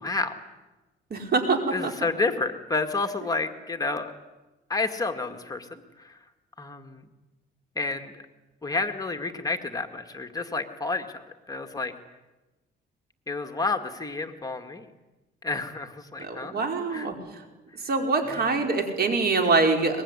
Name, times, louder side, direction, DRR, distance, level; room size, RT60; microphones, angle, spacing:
voice 1, 0.0-0.4 1.7-4.1 4.7-6.2 6.6-7.1 7.8-8.1 8.6-11.9 13.3-14.9 15.4-17.1 18.3-18.5, left 3 dB, 20° left, 4 dB, 2.0 m, -30 dB
voice 2, 1.1-1.9 16.2-17.4 17.8-20.0, right 3 dB, 50° right, 4 dB, 5.0 m, -25 dB
23.0 x 21.5 x 9.9 m, 1.1 s
cardioid pair, 90°, 20 cm